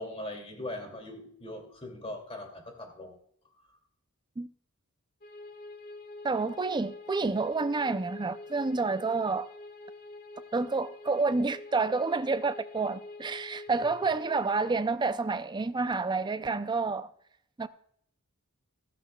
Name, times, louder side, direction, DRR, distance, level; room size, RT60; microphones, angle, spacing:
voice 1, 0.0-3.1, left 1 dB, 25° left, 2.6 m, -40 dB
sound 1, 5.2-14.7, left 2 dB, 45° left, 1.5 m, -46 dB
voice 2, 6.2-9.5 10.5-17.1 17.6-17.7, right 4 dB, 20° right, 0.4 m, -29 dB
15.0 x 13.5 x 2.3 m
head